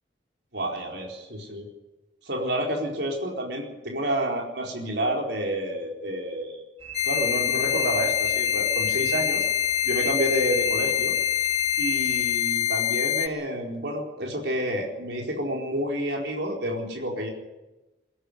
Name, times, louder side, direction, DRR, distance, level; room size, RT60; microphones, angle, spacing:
voice 1, 0.5-1.7 2.2-6.6 7.1-9.5 9.8-11.1 11.8-17.3, right 1 dB, 70° right, 1 dB, 4.4 m, -29 dB
sound 1, 6.8-12.4, right 7 dB, 35° right, 4.1 m, -38 dB
sound 2, 6.9-13.3, left 10 dB, 35° left, 0.8 m, -25 dB
22.5 x 12.5 x 10.0 m, 1.0 s
head